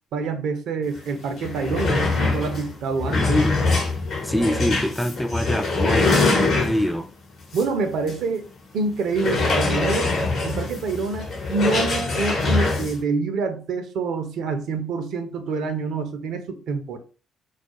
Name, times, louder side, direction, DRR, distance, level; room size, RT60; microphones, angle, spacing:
voice 1, 0.1-3.4 7.5-8.5 8.7-10.1 10.4-17.0, right 4 dB, 65° right, 0.4 m, -26 dB
sound 1, 1.0-1.1 1.3-7.0 7.5-7.7 8.1-8.2 9.1-13.0, left 3 dB, 60° left, 0.8 m, -23 dB
voice 2, 3.1-3.6 4.2-7.1, left 1 dB, 5° left, 0.3 m, -25 dB
2.3 x 2.1 x 2.9 m
hypercardioid pair, 45°, 0 cm